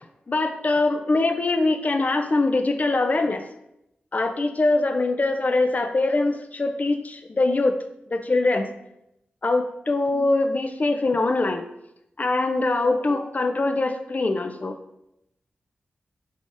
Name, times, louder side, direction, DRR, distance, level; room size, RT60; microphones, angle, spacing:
voice 1, 0.3-3.5 4.1-7.8 8.1-8.7 9.4-11.7 12.2-14.8, left 2 dB, 45° left, 7 dB, 0.4 m, -23 dB
3.7 x 3.5 x 2.5 m, 0.83 s
cardioid pair, 40°, 4 cm